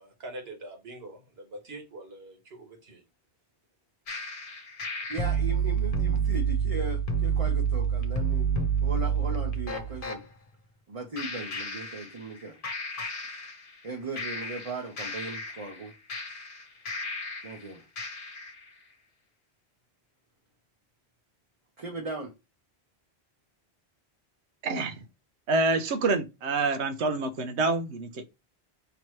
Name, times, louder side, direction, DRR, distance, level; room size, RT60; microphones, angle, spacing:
voice 1, 0.0-3.0, right 1 dB, 65° right, 1.6 m, -44 dB
sound 1, 4.1-10.2 11.2-12.4 12.6-13.9 14.2-17.6 18.0-18.6, right 5 dB, 55° left, 1.0 m, -30 dB
voice 2, 5.1-10.2 10.9-12.6 13.8-16.0 17.4-17.8 21.8-22.3, right 2 dB, 35° right, 0.8 m, -38 dB
voice 3, 24.6-25.0 25.5-28.3, right 3 dB, 90° right, 1.0 m, -27 dB
5.8 x 2.9 x 3.1 m
omnidirectional pair, 1.1 m